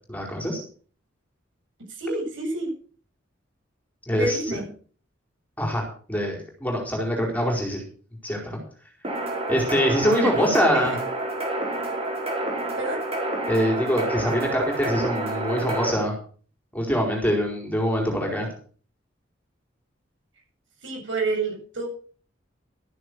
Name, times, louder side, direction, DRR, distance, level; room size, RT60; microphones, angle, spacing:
voice 1, 0.1-0.6 4.1-4.6 5.6-5.8 6.1-7.8 8.2-8.6 9.5-11.0 13.5-16.1 16.7-18.5, equal, 10° left, 0 dB, 4.6 m, -24 dB
voice 2, 1.9-2.7 4.1-4.7 10.0-10.5 10.7-10.9 12.8-13.0 20.8-21.9, right 2 dB, 75° right, 1 dB, 7.8 m, -28 dB
sound 1, 9.0-15.9, right 1 dB, 30° right, 5.3 m, -29 dB
13.0 x 11.0 x 6.3 m, 0.43 s
head